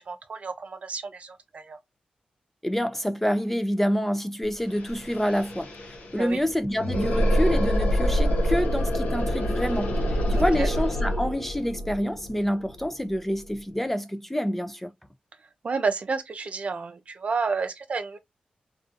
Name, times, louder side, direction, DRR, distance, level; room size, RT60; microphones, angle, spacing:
voice 1, 0.0-1.8 6.2-6.4 10.3-10.7 15.6-18.2, right 4 dB, 55° right, 0.5 m, -30 dB
voice 2, 2.6-14.9, equal, 10° left, 0.3 m, -27 dB
sound 1, 4.4-4.5 4.7-13.5, equal, 90° left, 0.5 m, -26 dB
2.6 x 2.4 x 2.4 m
cardioid pair, 70°, 3 cm